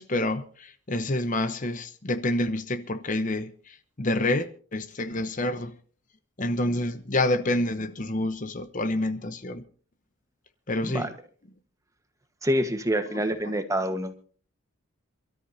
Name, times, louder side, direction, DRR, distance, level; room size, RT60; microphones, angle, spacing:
voice 1, 0.0-5.8 6.4-9.6 10.7-11.1, left 1 dB, 35° left, 0.9 m, -28 dB
voice 2, 12.4-14.1, equal, 15° right, 1.3 m, -26 dB
27.5 x 13.5 x 2.8 m
head